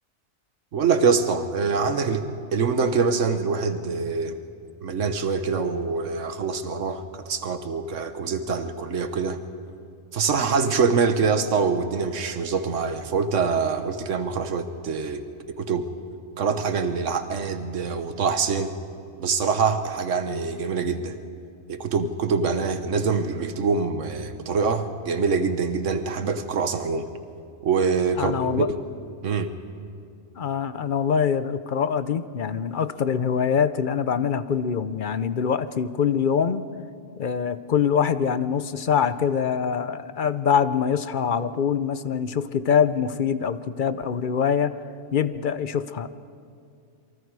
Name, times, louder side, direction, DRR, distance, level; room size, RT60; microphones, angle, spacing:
voice 1, 0.7-4.4 4.8-9.4 10.1-15.2 15.6-15.9 16.4-18.7 19.2-21.2 21.7-27.1 27.6-28.8 29.2-29.5, right 5 dB, 90° right, 9 dB, 1.4 m, -24 dB
voice 2, 28.2-28.7 30.4-36.7 37.2-44.8 45.1-46.1, left 7 dB, 50° left, 13 dB, 0.7 m, -24 dB
28.0 x 23.5 x 4.8 m, 2.4 s
omnidirectional pair, 1.2 m